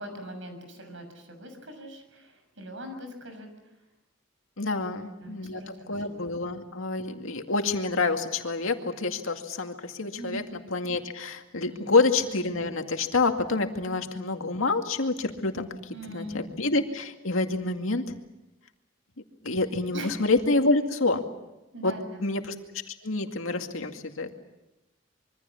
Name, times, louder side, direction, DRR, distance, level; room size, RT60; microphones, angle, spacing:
voice 1, 0.0-3.5 4.7-6.0 10.1-10.4 11.7-11.9 13.8-13.9 15.9-16.4 19.9-20.2 21.7-22.3, right 1 dB, 70° right, 7 dB, 6.6 m, -41 dB
voice 2, 4.6-5.6 5.9-10.4 10.7-18.2 19.4-21.2 21.8-21.9 22.2-22.5 22.9-24.4, left 3 dB, 85° left, 5 dB, 2.2 m, -27 dB
26.0 x 24.0 x 7.2 m, 0.97 s
head